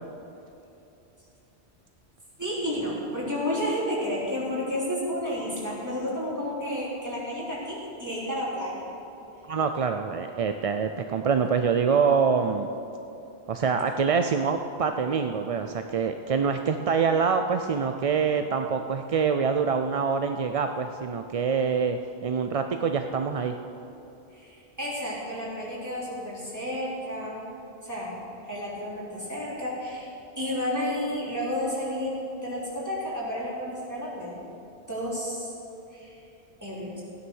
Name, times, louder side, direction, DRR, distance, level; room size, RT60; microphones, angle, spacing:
voice 1, 2.4-8.9 24.3-27.4 27.8-28.1 28.4-34.4 34.9-35.5 35.9-36.2 36.6-37.0, equal, 15° right, -7 dB, 3.6 m, -31 dB
voice 2, 9.5-12.7 13.5-23.5, right 6 dB, 50° right, 6 dB, 0.4 m, -25 dB
15.5 x 9.7 x 6.3 m, 2.9 s
omnidirectional pair, 1.1 m